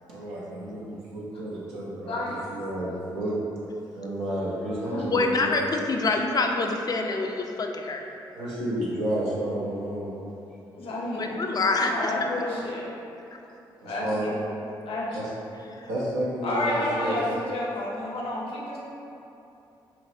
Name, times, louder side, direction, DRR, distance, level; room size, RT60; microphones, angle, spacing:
voice 1, 0.1-3.3 3.9-5.5 8.3-10.1 10.8-10.9 13.8-14.3 15.1-15.2 15.8-17.2, right 1 dB, 90° right, -7 dB, 0.7 m, -31 dB
voice 2, 2.0-2.5 4.8-5.1 10.8-11.6 11.9-12.8 13.8-14.4 14.9-15.0 16.4-18.8, left 1 dB, 65° left, -5 dB, 0.7 m, -30 dB
voice 3, 5.1-8.0 11.2-12.1, left 3 dB, 40° left, 2 dB, 0.4 m, -26 dB
5.5 x 2.1 x 2.6 m, 2.8 s
hypercardioid pair, 45°, 10 cm